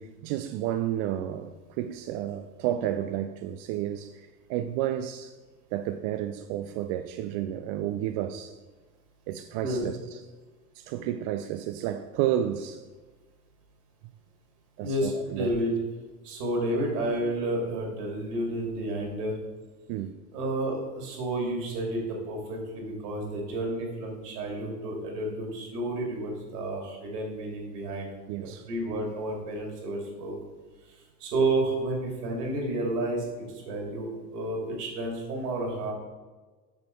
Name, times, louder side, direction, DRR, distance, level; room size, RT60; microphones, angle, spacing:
voice 1, 0.0-5.3 5.7-8.6 9.3-10.2 10.8-12.8 14.8-15.5 19.9-20.2 28.3-28.7, right 11 dB, 50° right, 0.5 m, -31 dB
voice 2, 14.8-15.7 16.2-19.4 20.3-28.1 28.7-30.3 31.2-33.3 33.6-35.9, right 1 dB, 70° right, 2.7 m, -30 dB
7.5 x 6.0 x 4.4 m
hypercardioid pair, 80°, 48 cm